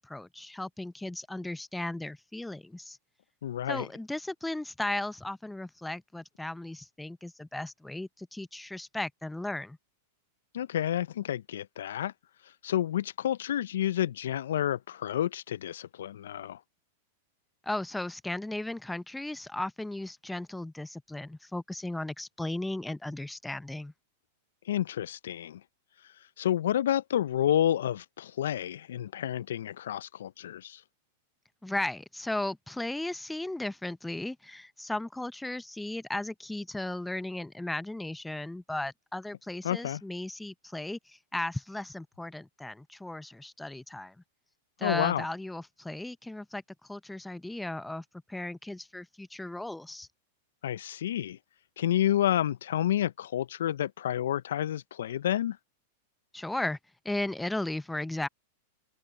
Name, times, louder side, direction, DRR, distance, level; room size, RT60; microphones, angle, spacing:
voice 1, 0.0-3.0 3.7-9.8 17.6-23.9 31.6-44.1 44.8-46.6 46.9-50.1 56.3-56.8 57.0-58.3, left 1 dB, 5° left, 0.8 m, -36 dB
voice 2, 3.4-3.9 10.5-12.1 12.4-16.6 24.6-25.6 26.0-30.8 39.6-40.0 44.8-45.2 50.6-51.4 51.8-55.6, left 11 dB, 70° left, 0.6 m, -30 dB
hypercardioid pair, 100°, 0 cm